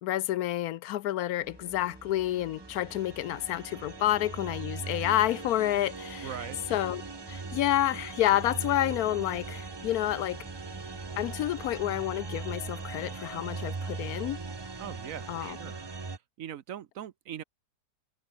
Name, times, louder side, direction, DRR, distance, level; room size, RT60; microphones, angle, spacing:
voice 1, 0.0-6.3 6.7-7.0 7.3-10.4 11.2-14.4 15.3-15.6, left 13 dB, 75° left, 1.1 m, -29 dB
sound 1, 1.4-13.0, right 1 dB, 5° right, 0.9 m, -52 dB
sound 2, 1.8-16.2, right 4 dB, 25° right, 0.5 m, -40 dB
voice 2, 6.2-6.6 14.8-15.9 16.4-17.4, right 10 dB, 65° right, 1.1 m, -41 dB
sound 3, 7.3-7.8 8.9-9.4 9.7-10.2 10.5-11.0 12.2-12.7 13.0-13.6 13.8-14.4, left 2 dB, 50° left, 5.1 m, -64 dB
omnidirectional pair, 1.6 m